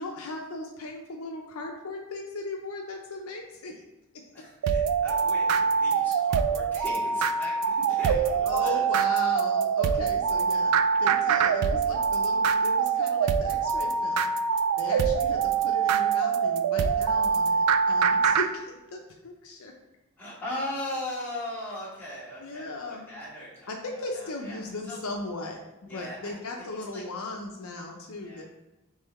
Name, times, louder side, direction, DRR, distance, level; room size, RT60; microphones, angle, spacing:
voice 1, 0.0-3.7 8.0-8.1 8.4-10.7 11.0-14.3 14.8-19.7 22.4-23.1 23.7-25.6 25.9-28.4, left 2 dB, 65° left, 2 dB, 0.5 m, -37 dB
voice 2, 4.3-8.8 20.2-25.0 25.9-26.4 26.7-27.0 28.2-28.4, left 1 dB, 10° left, -9 dB, 1.5 m, -39 dB
sound 1, 4.6-18.5, right 6 dB, 90° right, 0.3 m, -24 dB
3.8 x 3.1 x 4.1 m, 0.98 s
head